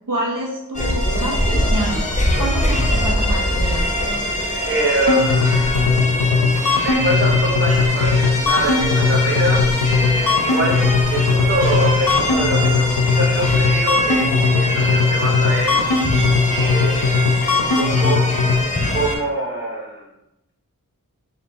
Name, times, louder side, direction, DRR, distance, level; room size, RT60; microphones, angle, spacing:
voice 1, 0.1-2.1 2.4-3.8, right 1 dB, 65° right, -3 dB, 0.9 m, -27 dB
sound 1, 0.7-19.2, left 1 dB, 20° left, 0.8 m, -23 dB
voice 2, 4.7-6.1 6.8-10.8 11.1-15.8 16.6-18.3 18.9-20.0, right 1 dB, 35° right, -2 dB, 0.9 m, -24 dB
sound 2, 5.0-18.6, left 4 dB, 80° left, 0.6 m, -19 dB
3.8 x 2.4 x 3.7 m, 0.87 s
wide cardioid pair, 40°, 35 cm